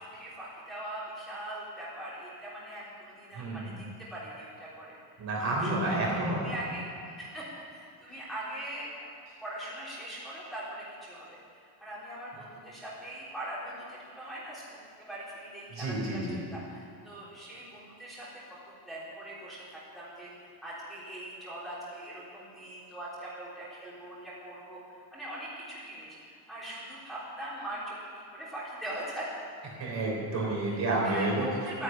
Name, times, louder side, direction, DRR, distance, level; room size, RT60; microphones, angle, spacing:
voice 1, 0.0-3.8 4.1-4.9 5.6-6.9 7.2-7.5 7.7-8.9 9.4-18.6 18.8-26.2 26.5-29.3 30.6-31.8, right 1 dB, ahead, -9 dB, 3.6 m, -41 dB
voice 2, 3.3-3.7 5.2-6.6 15.8-16.4 29.8-31.5, right 2 dB, 35° right, -3 dB, 3.6 m, -30 dB
12.5 x 10.0 x 9.1 m, 2.4 s
cardioid pair, 180°, 46 cm